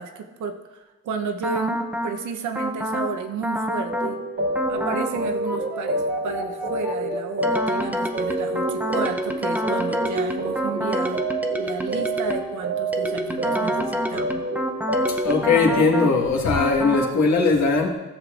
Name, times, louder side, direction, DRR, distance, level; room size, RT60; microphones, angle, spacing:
voice 1, 0.0-4.2 4.7-11.3 11.6-14.5, right 5 dB, 75° right, 6 dB, 0.9 m, -32 dB
sound 1, 1.4-2.1 2.5-3.1 3.4-4.1 4.5-5.1 5.5-12.5 12.9-16.1 16.5-17.1, equal, 5° right, 0.7 m, -28 dB
sound 2, 3.9-16.2, right 2 dB, 45° right, 1.6 m, -28 dB
voice 2, 15.1-17.9, left 4 dB, 65° left, 0 dB, 1.6 m, -20 dB
13.5 x 6.7 x 2.5 m, 1.1 s
cardioid pair, 90°, 30 cm